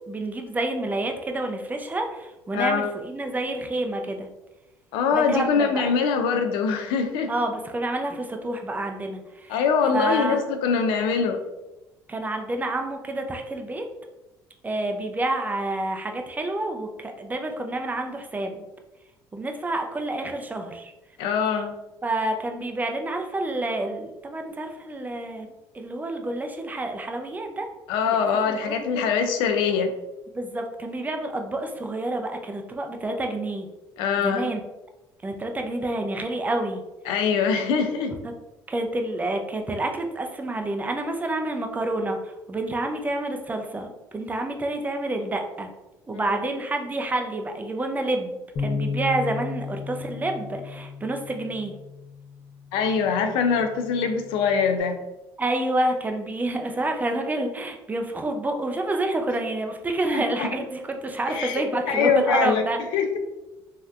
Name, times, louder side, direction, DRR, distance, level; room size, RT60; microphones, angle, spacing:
voice 1, 0.1-4.3 5.1-5.9 7.3-9.6 9.9-10.4 12.1-13.9 14.6-18.6 19.3-20.9 22.0-25.5 25.7-27.7 28.1-29.1 30.3-33.7 34.2-34.6 35.2-36.8 38.2-38.3 38.7-45.7 46.1-51.7 55.4-62.8, right 2 dB, 20° right, 4 dB, 0.5 m, -28 dB
voice 2, 2.5-2.9 4.9-7.3 9.5-11.4 21.2-21.7 27.9-29.9 34.0-34.5 37.1-38.2 46.1-46.4 52.7-55.0 60.1-60.5 61.3-62.6 62.9-63.2, left 6 dB, 80° left, 6 dB, 0.4 m, -23 dB
Bass guitar, 48.6-54.8, left 4 dB, 55° left, 0.7 m, -35 dB
3.2 x 2.8 x 2.4 m, 1.0 s
supercardioid pair, 90°, 8 cm